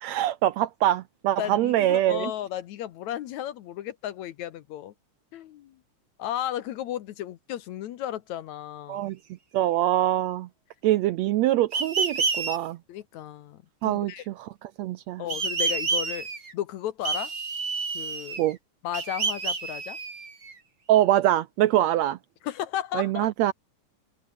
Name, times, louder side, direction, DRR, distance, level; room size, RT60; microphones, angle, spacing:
voice 1, 0.0-2.3 8.9-9.2 9.5-10.5 10.8-12.8 13.8-15.2 18.4-18.6 20.9-22.2 22.9-23.5, right 13 dB, 75° right, 1.7 m, -24 dB
voice 2, 1.4-4.9 5.3-5.7 6.2-9.1 12.9-14.2 15.2-16.3 16.5-17.3 17.9-18.4 18.8-20.0 22.4-23.3, left 11 dB, 70° left, 2.2 m, -34 dB
sound 1, 11.7-12.6 15.3-16.5 17.0-18.5 18.9-20.5, right 4 dB, 30° right, 2.9 m, -29 dB
open air
omnidirectional pair, 3.5 m